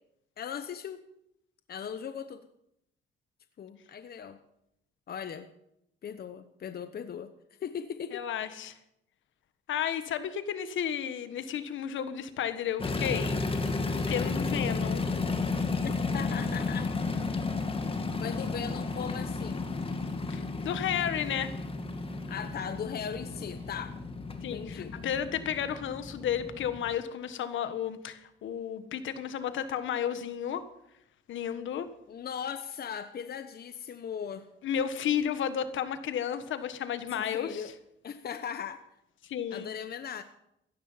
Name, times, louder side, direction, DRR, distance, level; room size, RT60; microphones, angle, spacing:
voice 1, 0.4-1.0 1.7-2.5 3.6-4.4 5.1-5.5 6.0-7.3 7.6-8.3 15.8-16.9 18.2-19.7 22.3-24.0 24.5-24.9 32.1-34.5 37.1-37.7 38.0-38.8 39.5-40.2, left 8 dB, 50° left, 10 dB, 1.0 m, -38 dB
voice 2, 8.1-8.7 9.7-13.7 13.9-15.0 20.3-21.5 24.4-30.6 31.3-31.9 34.6-37.7 39.2-39.7, left 9 dB, 75° left, 11 dB, 1.6 m, -32 dB
sound 1, 12.8-26.9, left 3 dB, 30° left, 2.2 m, -33 dB
16.0 x 14.0 x 5.7 m, 0.80 s
cardioid pair, 90°, 20 cm